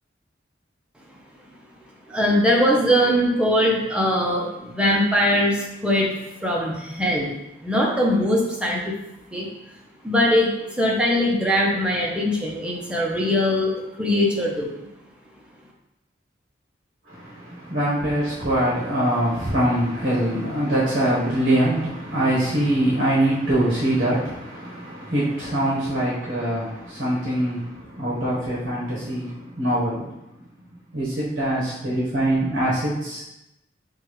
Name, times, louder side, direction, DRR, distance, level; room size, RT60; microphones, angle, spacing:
voice 1, 2.1-6.1 6.4-7.3 7.6-9.0 9.3-9.5 10.0-14.7, equal, 5° right, -3 dB, 0.6 m, -21 dB
voice 2, 17.1-30.1 30.9-33.2, right 1 dB, 50° right, -8 dB, 1.2 m, -23 dB
6.2 x 2.4 x 3.1 m, 0.90 s
head